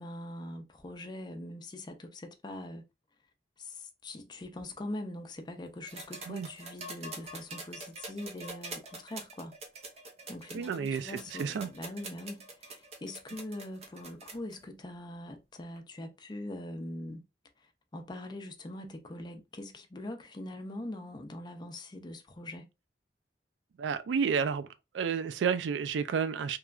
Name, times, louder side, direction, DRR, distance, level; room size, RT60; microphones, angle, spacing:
voice 1, 0.0-2.8 3.6-9.5 10.3-17.2 17.6-22.7, left 1 dB, 25° left, 0.4 m, -42 dB
sound 1, 5.9-14.6 15.8-15.9, right 2 dB, 35° right, 0.6 m, -45 dB
voice 2, 10.5-11.7 23.8-24.7 24.9-26.6, right 6 dB, 90° right, 0.3 m, -31 dB
3.0 x 2.2 x 2.4 m
head